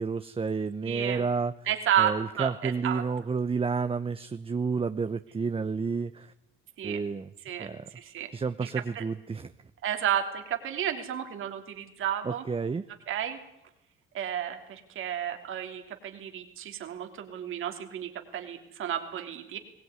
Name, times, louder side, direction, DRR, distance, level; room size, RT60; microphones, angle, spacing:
voice 1, 0.0-1.5 2.0-6.3 6.8-7.3 7.6-7.8 8.3-9.5 12.2-12.8, right 5 dB, 25° right, 11 dB, 0.8 m, -30 dB
voice 2, 0.8-1.2 1.7-3.0 6.8-7.0 7.4-7.7 7.9-8.3 8.6-9.0 9.8-12.4 13.1-13.4 14.1-19.6, right 10 dB, 75° right, 5 dB, 3.2 m, -32 dB
21.5 x 18.0 x 9.6 m, 0.81 s
cardioid pair, 85°, 21 cm